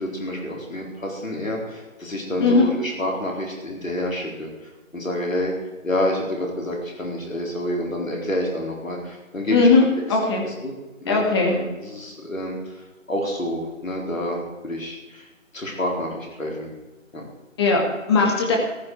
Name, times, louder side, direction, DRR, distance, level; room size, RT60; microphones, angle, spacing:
voice 1, 0.0-5.5 5.8-9.7 10.4-10.7 11.0-15.3 15.5-16.7 17.1-17.2, left 1 dB, 75° left, 0 dB, 4.2 m, -28 dB
voice 2, 9.5-10.4 11.1-11.6 17.6-17.8 18.1-18.6, left 3 dB, 20° left, 0 dB, 2.2 m, -18 dB
14.5 x 12.0 x 4.8 m, 1.2 s
figure-of-eight pair, 155°, 40 cm